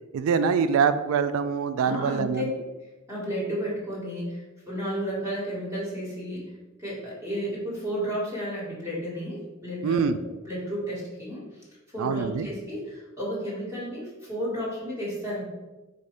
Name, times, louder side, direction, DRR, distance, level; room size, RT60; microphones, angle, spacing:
voice 1, 0.1-2.5 9.8-10.2 12.0-12.5, right 6 dB, 80° right, 12 dB, 0.3 m, -24 dB
voice 2, 1.8-2.4 3.1-6.5 6.8-10.1 10.5-11.6 11.9-15.4, equal, 15° right, -6 dB, 1.4 m, -32 dB
4.1 x 2.5 x 4.8 m, 1.1 s
head